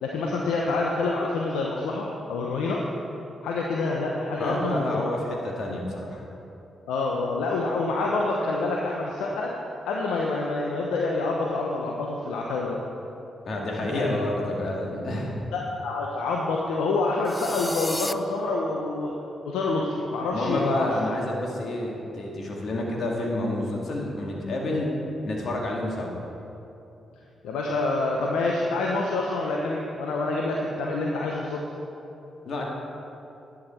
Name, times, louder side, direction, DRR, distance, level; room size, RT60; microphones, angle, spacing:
voice 1, 0.0-2.8 3.4-5.0 6.9-9.6 9.8-12.8 13.9-14.2 15.5-19.1 19.4-20.9 27.4-31.6, left 3 dB, 80° left, -2 dB, 0.8 m, -27 dB
voice 2, 4.4-6.2 13.4-15.3 20.3-24.9 25.2-26.2 32.5-32.6, left 1 dB, 65° left, -1 dB, 2.0 m, -29 dB
sound 1, 17.3-18.1, left 1 dB, 15° left, 0.5 m, -32 dB
11.0 x 8.3 x 4.4 m, 2.9 s
hypercardioid pair, 45°, 0 cm